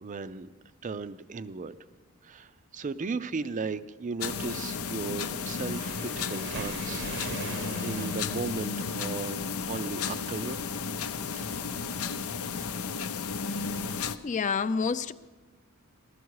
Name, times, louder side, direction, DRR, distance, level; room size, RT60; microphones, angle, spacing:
voice 1, 0.0-0.5 0.8-1.8 2.2-7.4 7.8-10.6, right 4 dB, 35° right, 14 dB, 0.4 m, -36 dB
sound 1, 4.2-14.2, left 5 dB, 80° left, 0.6 m, -33 dB
Waves surf, 5.3-8.7, right 4 dB, 60° right, 0.8 m, -40 dB
voice 2, 14.2-15.1, left 5 dB, 35° left, 14 dB, 0.4 m, -28 dB
15.0 x 13.5 x 4.7 m, 1.3 s
head